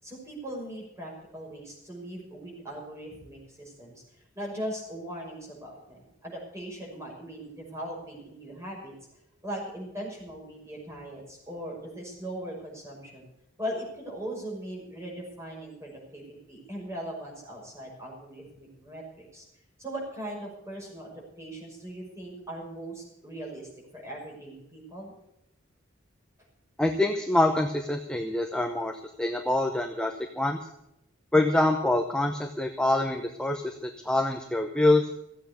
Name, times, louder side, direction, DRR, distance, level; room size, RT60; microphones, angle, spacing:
voice 1, 0.0-4.0 4.3-8.9 9.4-13.2 13.6-19.4 19.8-25.1, right 1 dB, 15° right, -2 dB, 5.8 m, -39 dB
voice 2, 26.8-28.9 29.2-30.6 31.3-35.0, left 2 dB, 5° left, 3 dB, 0.9 m, -25 dB
15.5 x 8.4 x 8.2 m, 0.81 s
head